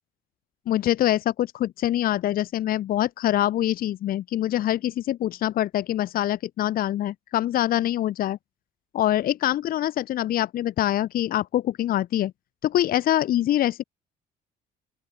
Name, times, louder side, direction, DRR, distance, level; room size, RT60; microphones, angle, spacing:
voice 1, 0.7-8.4 8.9-12.3 12.6-13.8, left 13 dB, 60° left, 1.0 m, -24 dB
open air
cardioid pair, 110°, 17 cm